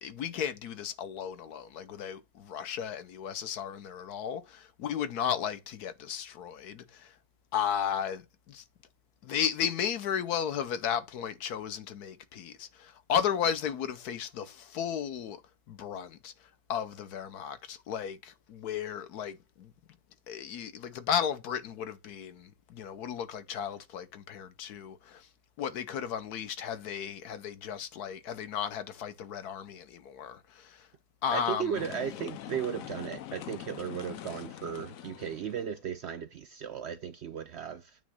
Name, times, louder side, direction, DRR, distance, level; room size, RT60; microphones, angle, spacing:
voice 1, 0.0-7.2 7.5-8.6 9.2-15.4 15.7-19.7 20.3-25.3 25.6-30.9 31.2-31.9, left 8 dB, 85° left, 1.4 m, -34 dB
voice 2, 31.3-38.0, right 8 dB, 65° right, 0.6 m, -36 dB
sound 1, 31.7-35.7, left 12 dB, 70° left, 1.0 m, -43 dB
8.9 x 3.2 x 6.3 m
omnidirectional pair, 1.6 m